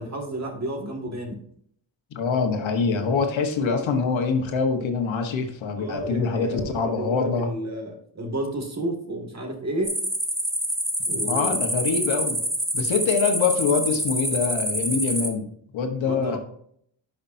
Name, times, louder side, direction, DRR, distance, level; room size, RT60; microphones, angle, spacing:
voice 1, 0.0-1.4 5.8-10.0 11.1-11.6 16.0-16.4, right 1 dB, 35° right, 2 dB, 2.3 m, -31 dB
voice 2, 2.1-7.5 11.1-12.4 12.7-16.4, left 5 dB, 80° left, 5 dB, 1.4 m, -24 dB
sound 1, 9.8-15.3, right 1 dB, 5° right, 1.4 m, -26 dB
11.5 x 5.9 x 2.7 m, 0.66 s
cardioid pair, 100°, 46 cm